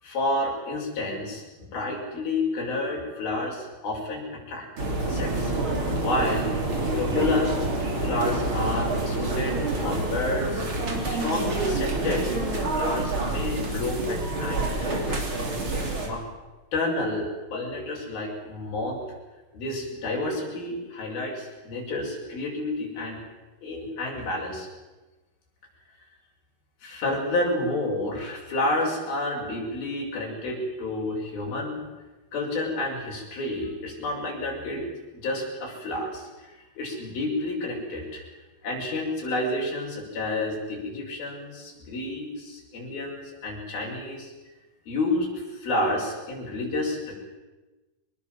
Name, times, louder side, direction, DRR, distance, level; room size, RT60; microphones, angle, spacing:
voice 1, 0.0-4.7 5.0-5.5 6.0-6.5 6.9-7.6 8.0-10.7 11.1-12.3 12.7-15.2 16.0-16.2 16.7-19.0 19.5-23.2 23.6-24.7 26.8-31.8 32.3-34.9 35.1-38.2 38.6-44.3 44.9-47.1, left 2 dB, 80° left, -2 dB, 8.0 m, -30 dB
sound 1, 4.8-16.1, right 2 dB, 35° right, 4.0 m, -27 dB
24.0 x 21.0 x 7.7 m, 1.2 s
omnidirectional pair, 4.2 m